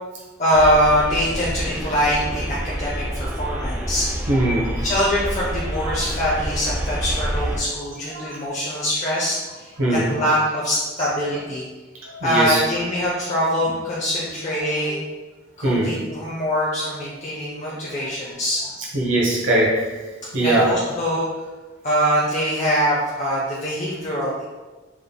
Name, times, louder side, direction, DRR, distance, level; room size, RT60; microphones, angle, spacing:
voice 1, 0.4-4.3 4.8-11.6 12.2-15.0 15.6-18.6 20.4-21.3 21.8-24.4, equal, 40° left, -6 dB, 0.6 m, -23 dB
sound 1, 0.5-7.6, right 1 dB, 10° right, 0.3 m, -28 dB
voice 2, 4.3-4.8 5.8-6.0 8.1-8.4 9.8-10.1 12.0-12.6 14.9-15.0 15.6-15.9 17.7-17.8 18.9-20.0 20.3-20.7, right 1 dB, 90° right, -4 dB, 1.0 m, -21 dB
4.7 x 3.4 x 2.3 m, 1.2 s
head